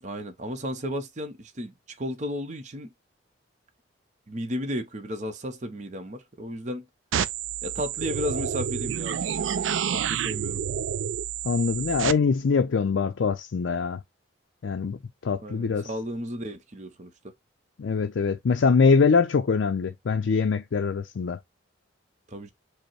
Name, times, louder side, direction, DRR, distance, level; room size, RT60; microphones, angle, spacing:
voice 1, 0.0-2.9 4.3-6.9 7.6-9.6 9.9-10.6 15.4-17.3 22.3-22.5, equal, 35° right, 0.7 m, -34 dB
sound 1, 7.1-12.1, right 8 dB, 75° right, 0.3 m, -29 dB
voice 2, 11.4-14.0 14.6-15.9 17.8-21.4, left 5 dB, 65° left, 0.4 m, -23 dB
5.1 x 2.1 x 4.5 m
head